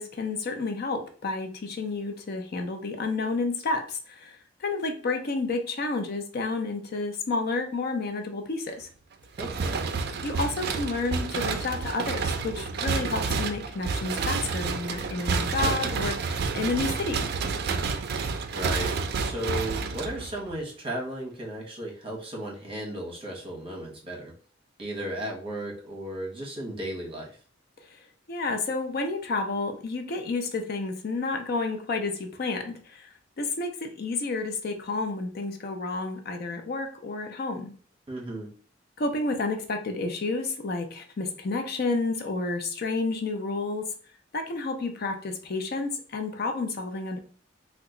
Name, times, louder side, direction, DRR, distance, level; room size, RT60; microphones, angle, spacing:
voice 1, 0.0-8.9 10.2-17.3 27.8-28.0 28.3-37.7 39.0-43.9 44.3-47.2, left 3 dB, 50° left, 5 dB, 0.5 m, -30 dB
voice 2, 9.4-9.8 18.5-18.9 19.2-24.3 24.8-27.4 38.1-38.5, right 1 dB, 30° right, -2 dB, 0.9 m, -35 dB
sound 1, 9.4-20.6, right 4 dB, 55° right, 0.4 m, -29 dB
2.9 x 2.2 x 3.7 m, 0.43 s
head